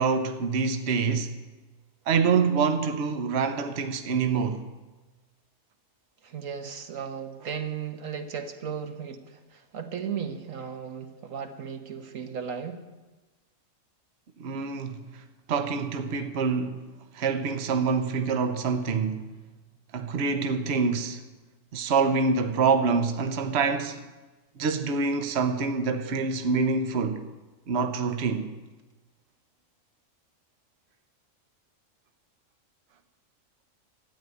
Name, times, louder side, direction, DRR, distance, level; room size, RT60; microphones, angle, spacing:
voice 1, 0.0-1.3 2.1-4.7 14.4-15.2 15.5-16.8 17.1-19.3 19.9-21.2 21.7-24.1 24.6-27.3 27.7-28.5, right 5 dB, 60° right, 1.1 m, -26 dB
voice 2, 6.2-12.8, right 7 dB, 85° right, 1.5 m, -36 dB
13.0 x 9.6 x 9.2 m
omnidirectional pair, 1.3 m